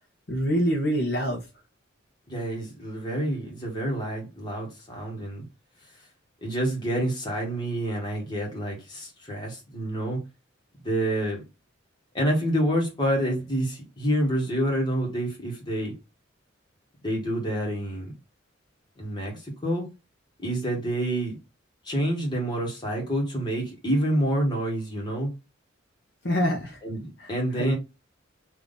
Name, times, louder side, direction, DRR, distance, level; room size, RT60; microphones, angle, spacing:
voice 1, 0.3-1.4 26.2-26.8 27.2-27.7, equal, 55° left, 1.0 m, -26 dB
voice 2, 2.3-5.5 6.4-10.2 10.8-11.4 12.1-15.9 17.0-18.1 19.0-19.9 20.4-21.4 21.8-25.3 26.8-27.7, right 1 dB, 20° left, 1.5 m, -28 dB
3.6 x 2.8 x 3.9 m
head